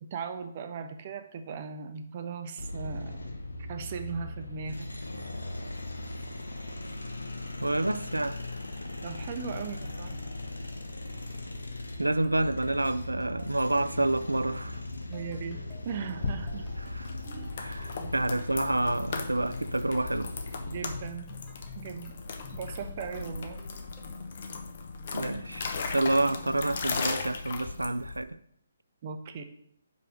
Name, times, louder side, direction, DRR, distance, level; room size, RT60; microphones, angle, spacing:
voice 1, 0.0-3.2 3.7-4.9 9.0-10.2 15.1-15.6 15.8-16.7 17.2-17.5 18.0-18.1 20.7-21.2 21.8-22.1 22.5-23.6 29.0-29.4, right 6 dB, 35° right, 0.7 m, -38 dB
sound 1, 2.6-21.1, left 2 dB, 75° left, 0.9 m, -39 dB
voice 2, 7.6-8.4 12.0-14.8 16.8-17.2 17.6-20.3 25.1-25.7 25.9-28.4, right 2 dB, 80° right, 0.4 m, -28 dB
sound 2, 12.0-24.4, left 5 dB, 5° left, 1.7 m, -52 dB
sound 3, 16.2-28.2, left 4 dB, 45° left, 0.8 m, -37 dB
5.6 x 4.7 x 6.2 m
figure-of-eight pair, 135°, 0 cm